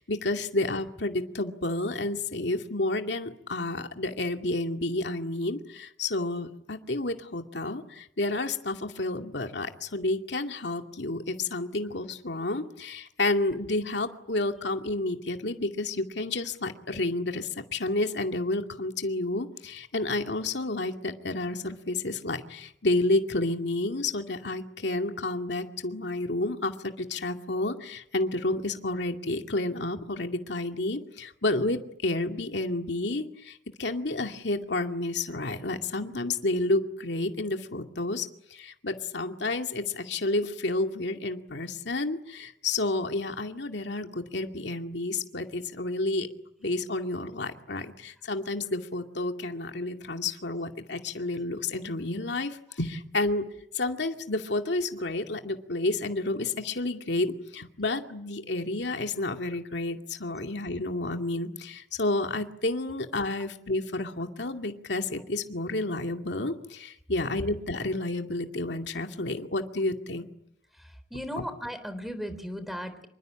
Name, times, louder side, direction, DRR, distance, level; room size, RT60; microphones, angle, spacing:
voice 1, 0.0-46.3 46.6-53.4 53.7-70.3 71.4-71.5, left 2 dB, 70° left, 5 dB, 2.3 m, -30 dB
voice 2, 70.7-73.1, equal, ahead, 11 dB, 3.7 m, -37 dB
27.0 x 24.0 x 8.9 m, 0.75 s
head